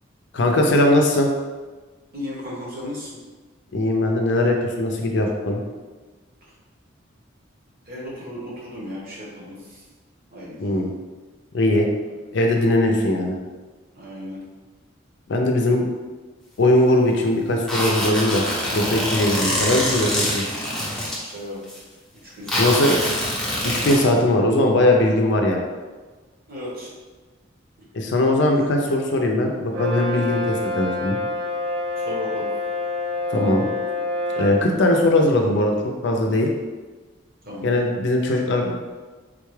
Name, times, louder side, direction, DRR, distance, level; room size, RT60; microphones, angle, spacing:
voice 1, 0.3-1.3 3.7-5.6 10.6-10.9 11.5-11.9 12.3-13.4 15.3-15.9 16.6-18.4 18.7-20.4 22.6-23.0 23.6-25.6 27.9-31.2 33.3-33.7 34.4-35.7 36.0-36.5 37.6-38.7, left 1 dB, 60° left, 2 dB, 0.5 m, -20 dB
voice 2, 2.1-3.2 7.9-9.8 10.3-10.6 13.9-14.4 21.2-21.6 22.2-23.1 26.5-26.9 27.8-27.9 32.1-32.5 37.4-37.8, left 1 dB, 50° right, -5 dB, 1.0 m, -35 dB
sound 1, 17.7-21.2 21.6-21.8 22.5-24.0, left 1 dB, 5° left, 0.7 m, -24 dB
Brass instrument, 29.7-34.6, left 2 dB, 80° right, 0.5 m, -27 dB
3.7 x 2.3 x 3.1 m, 1.3 s
head